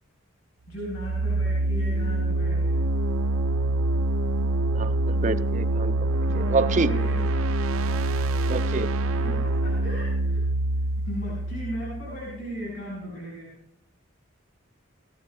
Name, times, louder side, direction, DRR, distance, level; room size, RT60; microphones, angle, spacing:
voice 1, 0.7-2.8 6.2-8.1 9.1-10.4 11.0-13.5, equal, 70° left, -4 dB, 5.1 m, -37 dB
sound 1, 0.8-12.6, right 2 dB, 90° right, 0.5 m, -25 dB
voice 2, 4.7-5.9 6.3-6.9 8.5-8.9, right 3 dB, 40° right, 11 dB, 0.5 m, -27 dB
19.0 x 14.5 x 2.3 m, 0.81 s
head